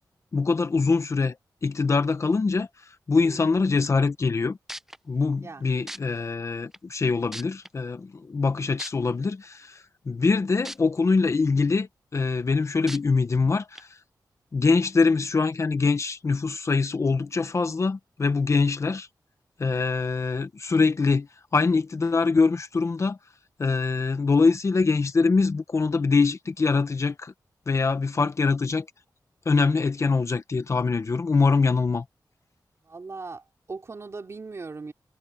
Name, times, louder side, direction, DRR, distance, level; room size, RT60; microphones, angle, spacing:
voice 1, 0.3-1.3 1.6-2.7 3.1-4.6 5.1-13.9 14.5-19.1 19.6-21.3 21.5-23.2 23.6-27.3 27.7-28.9 29.5-32.0, left 4 dB, 40° left, 1.0 m, -23 dB
sound 1, 4.3-4.4 4.7-5.0 5.9-6.0 6.7-6.8 7.3-7.7 8.8-8.9 10.6-10.8 11.3-11.4 12.9-13.0 13.7-13.8, right 1 dB, 5° right, 0.7 m, -36 dB
voice 2, 32.8-34.9, right 4 dB, 40° right, 3.5 m, -39 dB
wide cardioid pair, 170°, 7 cm